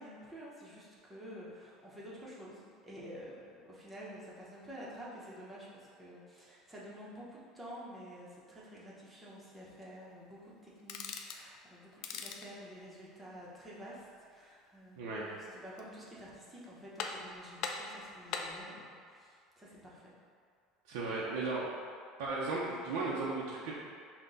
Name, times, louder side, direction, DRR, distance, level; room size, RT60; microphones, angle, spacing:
voice 1, 0.0-20.1, equal, 10° right, -6 dB, 0.8 m, -50 dB
sound 1, 10.8-11.5 11.9-12.5 15.5-16.1 16.4-16.5 17.0-17.3 17.6-18.6, left 5 dB, 55° left, 0.4 m, -40 dB
voice 2, 15.0-15.3 20.9-21.7 22.2-23.7, right 3 dB, 85° right, -6 dB, 0.6 m, -35 dB
5.7 x 2.2 x 3.9 m, 2.2 s
cardioid pair, 160°, 0 cm